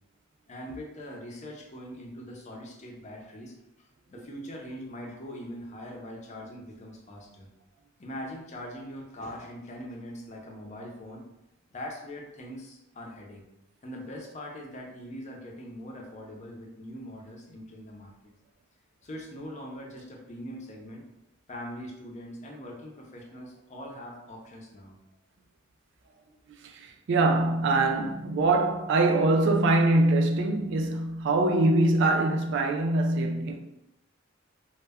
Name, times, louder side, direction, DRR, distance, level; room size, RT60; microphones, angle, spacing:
voice 1, 0.5-7.5 8.0-11.2 11.7-13.4 13.8-18.3 19.0-21.0 21.5-25.0, equal, 35° left, 0.5 m, -42 dB
voice 2, 27.1-33.6, right 2 dB, 65° right, 0.4 m, -23 dB
2.1 x 2.1 x 3.4 m
head